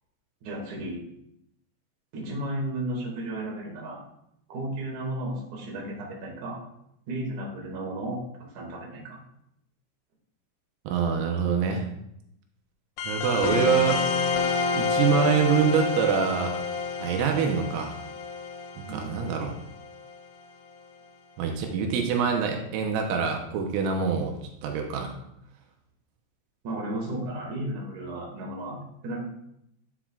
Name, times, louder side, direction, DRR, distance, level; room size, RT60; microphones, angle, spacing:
voice 1, 0.4-1.0 2.1-4.0 4.5-6.6 7.1-8.2 8.5-9.2 18.8-19.4 26.6-29.2, right 1 dB, 50° right, -3 dB, 2.8 m, -34 dB
voice 2, 10.9-11.9 13.1-14.1 14.7-16.6 17.0-18.0 18.8-19.6 21.4-24.3 24.6-25.1, right 6 dB, 85° right, 3 dB, 3.5 m, -25 dB
sound 1, 13.0-20.1, left 4 dB, 85° left, 3.2 m, -29 dB
10.0 x 7.2 x 2.4 m, 0.77 s
omnidirectional pair, 5.7 m